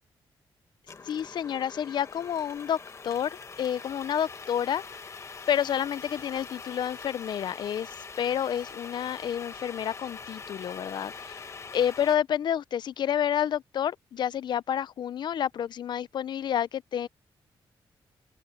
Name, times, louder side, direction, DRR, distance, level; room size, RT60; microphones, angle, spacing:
sound 1, 0.9-12.2, left 4 dB, 35° left, 1.3 m, -43 dB
voice 1, 1.0-2.8 3.0-3.3 3.6-4.8 5.2-11.4 11.7-17.1, left 9 dB, 60° left, 0.5 m, -29 dB
open air
cardioid pair, 125°, 9 cm